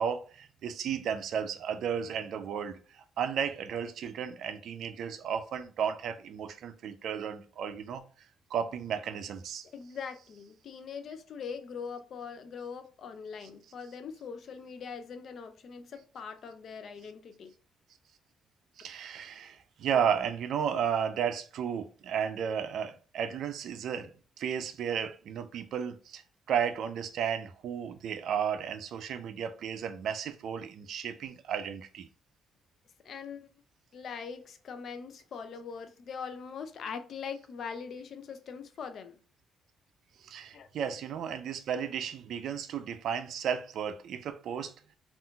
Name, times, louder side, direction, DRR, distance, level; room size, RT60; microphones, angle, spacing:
voice 1, 0.0-8.0 8.5-9.7 18.8-24.1 24.4-26.2 26.5-32.1 40.2-44.7, right 8 dB, 70° right, 0.4 m, -33 dB
voice 2, 9.7-17.5 33.0-33.5 33.9-39.2 40.5-40.7, left 6 dB, 60° left, 0.4 m, -42 dB
3.6 x 2.4 x 2.2 m
cardioid pair, 90°, 0 cm